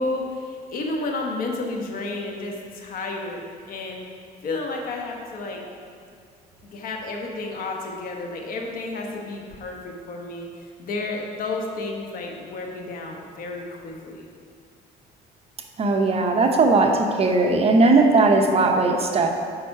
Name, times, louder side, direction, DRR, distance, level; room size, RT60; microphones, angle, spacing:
voice 1, 0.0-4.0 4.4-5.6 6.6-10.5 10.8-14.3, left 2 dB, 60° left, 1 dB, 1.3 m, -31 dB
voice 2, 15.8-19.3, right 3 dB, 35° right, 3 dB, 0.8 m, -18 dB
8.0 x 5.4 x 4.7 m, 2.2 s
cardioid pair, 110°, 17 cm